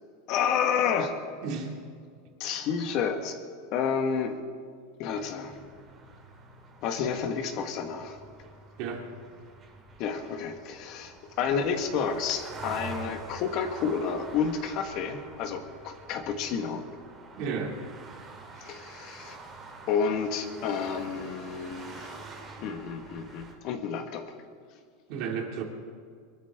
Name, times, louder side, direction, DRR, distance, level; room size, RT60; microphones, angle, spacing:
voice 1, 0.3-1.2 2.4-3.4 3.7-4.4 5.0-5.6 6.8-8.2 10.0-16.8 18.6-19.4 19.9-22.2 22.6-24.3, left 6 dB, 45° left, 7 dB, 1.6 m, -30 dB
sound 1, 5.1-23.5, right 3 dB, 20° right, 2.6 m, -46 dB
voice 2, 17.4-17.7 25.1-25.6, right 6 dB, 50° right, 2 dB, 2.5 m, -32 dB
24.0 x 13.0 x 3.7 m, 2.1 s
supercardioid pair, 155°, 0 cm